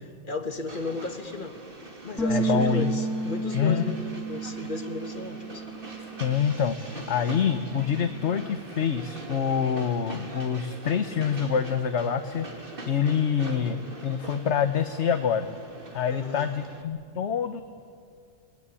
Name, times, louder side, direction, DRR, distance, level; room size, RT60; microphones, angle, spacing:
voice 1, 0.2-1.6 2.0-5.6 16.1-16.6, left 3 dB, 35° left, 7 dB, 1.8 m, -34 dB
Train, 0.7-16.8, right 2 dB, 40° right, 2.8 m, -43 dB
sound 1, 2.2-6.7 7.0-8.4, right 4 dB, ahead, 3.2 m, -32 dB
voice 2, 2.3-2.9 3.5-4.0 6.2-12.5 12.9-15.5 15.9-17.6, left 7 dB, 55° left, 9 dB, 1.2 m, -26 dB
28.5 x 20.0 x 9.9 m, 2.3 s
omnidirectional pair, 1.5 m